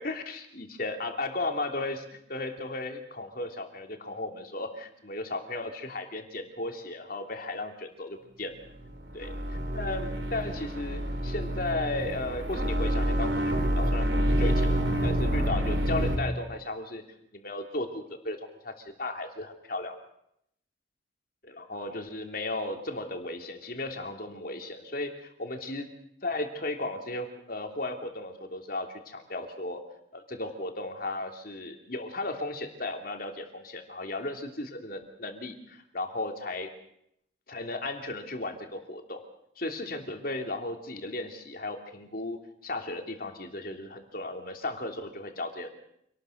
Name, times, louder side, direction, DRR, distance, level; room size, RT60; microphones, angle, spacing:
voice 1, 0.0-8.5 9.1-9.3 9.7-14.7 15.0-17.0 17.3-19.9 21.4-25.9 26.2-29.8 30.1-36.7 37.5-39.2 39.6-45.7, left 2 dB, 50° left, 4 dB, 3.1 m, -35 dB
sound 1, 8.7-16.2, equal, 70° right, 4.1 m, -28 dB
27.0 x 19.5 x 6.6 m, 0.75 s
head